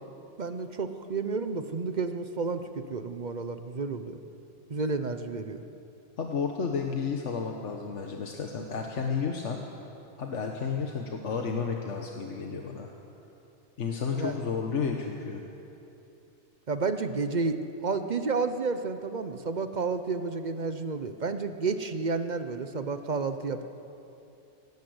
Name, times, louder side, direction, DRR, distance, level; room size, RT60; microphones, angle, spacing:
voice 1, 0.4-4.2 4.7-5.6 14.1-14.3 16.7-17.6 17.8-23.6, right 4 dB, 40° right, 9 dB, 0.9 m, -31 dB
voice 2, 6.2-9.6 10.2-12.9 13.8-15.4, left 5 dB, 85° left, 2 dB, 1.5 m, -32 dB
18.5 x 18.0 x 8.0 m, 2.9 s
omnidirectional pair, 1.2 m